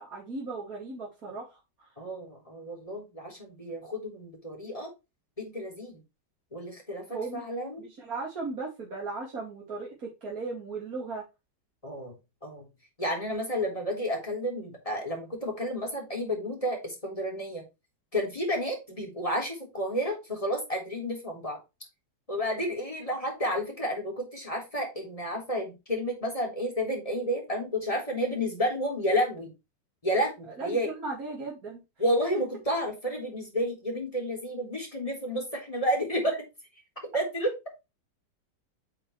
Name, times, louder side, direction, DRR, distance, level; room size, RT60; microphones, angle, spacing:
voice 1, 0.0-1.5 1.8-1.9 7.1-7.4 7.8-11.2 30.6-31.8, right 3 dB, 50° right, -3 dB, 2.8 m, -36 dB
voice 2, 2.0-4.9 5.4-6.0 6.5-7.9 11.8-12.1 12.4-12.6 13.0-17.6 18.1-21.6 22.3-29.5 30.0-30.9 32.0-36.4 37.1-37.5, equal, 20° left, 0 dB, 3.9 m, -31 dB
8.7 x 5.9 x 3.2 m, 0.25 s
omnidirectional pair, 1.9 m